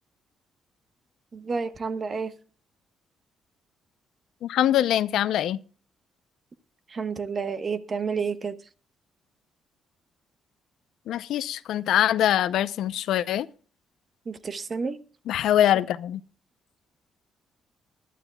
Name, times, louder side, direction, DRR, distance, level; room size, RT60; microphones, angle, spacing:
voice 1, 1.3-2.3 6.9-8.6 14.3-15.0, right 5 dB, 40° right, 1.1 m, -30 dB
voice 2, 4.4-5.6 11.1-13.5 15.3-16.2, left 11 dB, 80° left, 0.6 m, -23 dB
21.0 x 12.0 x 2.3 m
cardioid pair, 90°, 0 cm